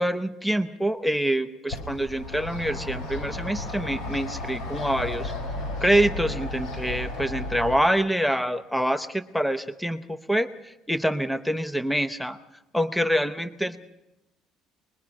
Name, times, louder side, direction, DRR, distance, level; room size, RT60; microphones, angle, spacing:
voice 1, 0.0-5.3 5.8-12.4 12.7-13.8, right 1 dB, ahead, 10 dB, 0.8 m, -26 dB
sound 1, 1.7-7.8, left 2 dB, 60° left, 6.7 m, -33 dB
24.0 x 21.0 x 5.4 m, 0.93 s
cardioid pair, 180°, 0 cm